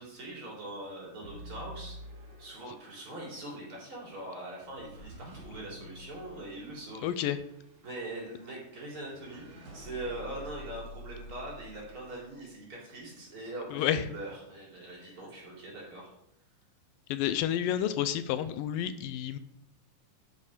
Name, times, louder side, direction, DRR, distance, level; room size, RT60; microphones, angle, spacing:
voice 1, 0.0-2.0 2.4-7.1 7.8-16.1, right 1 dB, 40° right, -4 dB, 4.2 m, -42 dB
sound 1, 1.2-12.5, equal, 55° right, 3.7 m, -49 dB
voice 2, 7.0-7.4 13.7-14.0 17.1-19.4, left 10 dB, 80° left, 12 dB, 2.3 m, -30 dB
12.0 x 6.7 x 5.0 m, 0.78 s
omnidirectional pair, 4.0 m